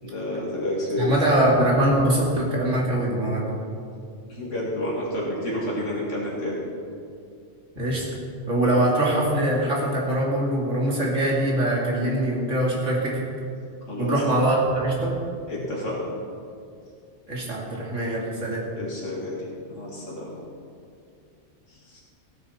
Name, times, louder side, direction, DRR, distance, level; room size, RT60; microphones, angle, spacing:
voice 1, 0.0-1.5 4.3-6.6 8.7-8.8 13.9-14.2 15.5-16.1 18.8-20.3 21.7-22.0, left 1 dB, 80° left, -5 dB, 2.4 m, -30 dB
voice 2, 1.0-3.5 7.8-8.1 8.5-13.2 14.0-15.1 17.3-18.6, right 1 dB, 80° right, -4 dB, 2.8 m, -23 dB
16.5 x 9.5 x 4.3 m, 2.4 s
omnidirectional pair, 1.3 m